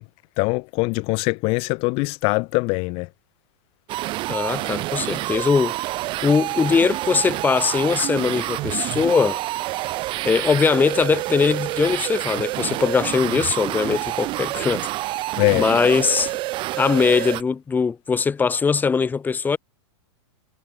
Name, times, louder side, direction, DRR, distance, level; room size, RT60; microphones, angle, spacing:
voice 1, 0.4-3.1 15.4-15.7, left 28 dB, 40° left, 4.2 m, -22 dB
sound 1, 3.9-17.4, right 18 dB, 35° right, 7.5 m, -28 dB
voice 2, 4.3-5.7 6.2-9.4 10.2-15.2 15.5-16.3 16.8-19.6, left 5 dB, 10° left, 6.9 m, -21 dB
supercardioid pair, 150°, 15 cm